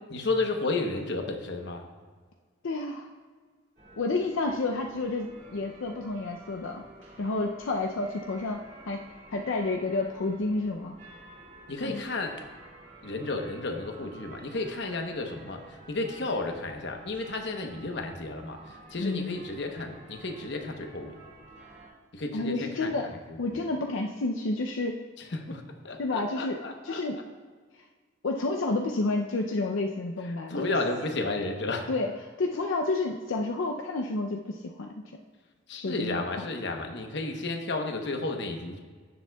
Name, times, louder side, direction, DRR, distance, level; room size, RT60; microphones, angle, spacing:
voice 1, 0.1-1.9 11.7-12.4 13.0-21.1 22.1-23.6 25.2-27.2 30.2-31.9 35.7-38.8, left 2 dB, 65° left, 4 dB, 1.0 m, -33 dB
voice 2, 2.6-3.1 4.0-6.8 7.2-8.6 8.9-9.0 9.3-11.0 11.8-12.0 19.0-19.4 22.3-23.1 23.4-25.0 26.0-26.6 26.8-27.2 28.2-30.8 31.9-32.1 32.4-35.0 35.8-36.5, left 2 dB, 85° left, 2 dB, 0.5 m, -30 dB
sound 1, 3.8-21.9, right 2 dB, 40° right, 2.4 m, -51 dB
16.0 x 7.1 x 2.3 m, 1.5 s
head